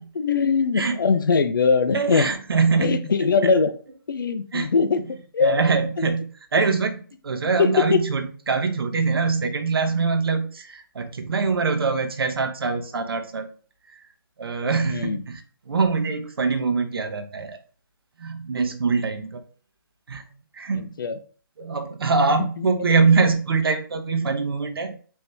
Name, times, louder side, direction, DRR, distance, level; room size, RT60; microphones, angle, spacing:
voice 1, 0.1-2.3 2.8-3.7 4.1-5.0 5.3-5.6 6.0-6.1 7.6-8.0 14.8-15.2 20.7-21.2 22.6-22.7, left 5 dB, 60° left, 12 dB, 0.5 m, -21 dB
voice 2, 1.9-3.1 3.4-3.5 4.5-4.7 5.4-13.5 14.4-15.4 15.7-17.6 18.2-19.4 20.1-20.2 20.5-20.9 21.6-25.0, right 4 dB, 80° right, 6 dB, 0.8 m, -23 dB
4.4 x 2.7 x 3.4 m, 0.41 s
hypercardioid pair, 180°, 12 cm